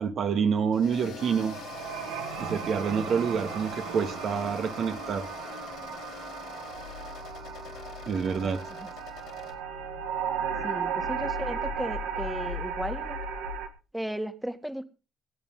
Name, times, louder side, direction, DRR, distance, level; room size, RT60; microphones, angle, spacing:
voice 1, 0.0-1.6 2.4-5.3 8.1-8.6, right 6 dB, 60° right, 1.9 m, -27 dB
sound 1, 0.7-9.5, left 8 dB, 75° left, 4.9 m, -44 dB
sound 2, 1.2-13.7, right 5 dB, 85° right, 2.0 m, -35 dB
voice 2, 8.3-8.9 10.6-13.2 13.9-14.8, equal, 5° right, 2.1 m, -36 dB
21.5 x 9.0 x 3.9 m
hypercardioid pair, 50°, 0 cm